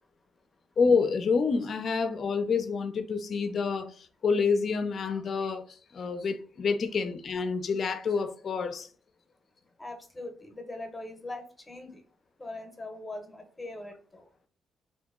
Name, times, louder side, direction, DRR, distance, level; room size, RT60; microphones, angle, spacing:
voice 1, 0.8-8.9, left 5 dB, 50° left, 0.4 m, -28 dB
voice 2, 9.8-12.0 12.4-14.3, left 2 dB, 15° left, 0.7 m, -41 dB
2.8 x 2.5 x 3.5 m
cardioid pair, 130°, 0 cm